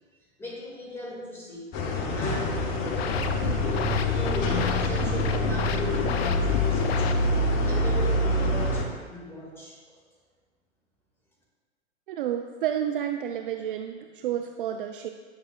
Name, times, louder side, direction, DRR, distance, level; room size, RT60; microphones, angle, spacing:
voice 1, 0.4-1.7 2.1-7.1 7.7-9.8, left 2 dB, 5° left, -4 dB, 2.0 m, -37 dB
sound 1, 1.7-8.9, left 1 dB, 35° left, 0.9 m, -26 dB
sound 2, 2.6-7.6, left 8 dB, 60° left, 0.6 m, -33 dB
voice 2, 12.1-15.1, right 10 dB, 50° right, 5 dB, 0.4 m, -30 dB
10.0 x 6.1 x 2.4 m, 1.5 s
figure-of-eight pair, 105°, 36 cm